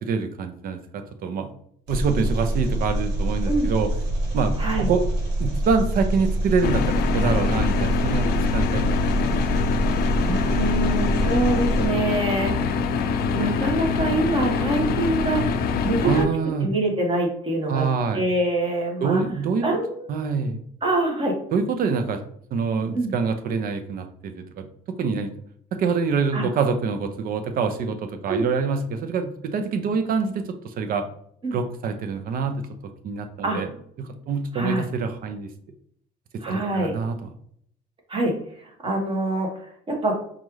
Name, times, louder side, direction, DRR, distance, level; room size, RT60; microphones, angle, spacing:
voice 1, 0.0-1.5 1.9-3.9 4.3-4.5 4.8-5.0 5.4-9.0 9.3-9.4 16.0-16.7 17.7-18.2 19.0-19.7 20.1-20.6 21.5-24.6 25.0-25.3 25.7-31.0 31.5-32.7 33.0-33.7 34.0-35.5 36.5-37.1, right 5 dB, 60° right, 7 dB, 0.7 m, -25 dB
Engine, 1.9-11.9, right 1 dB, 90° right, 1.1 m, -26 dB
sound 1, 6.6-16.3, left 5 dB, 65° left, 0.4 m, -24 dB
voice 2, 10.2-12.8 13.3-16.3 16.6-17.9 18.1-19.2 19.6-20.1 20.8-21.4 22.9-23.1 26.3-26.5 28.3-28.5 31.4-31.6 33.4-33.6 34.5-34.8 36.4-36.9 38.1-40.2, right 2 dB, 30° right, 1 dB, 1.3 m, -25 dB
5.3 x 2.4 x 3.2 m, 0.66 s
cardioid pair, 110°, 17 cm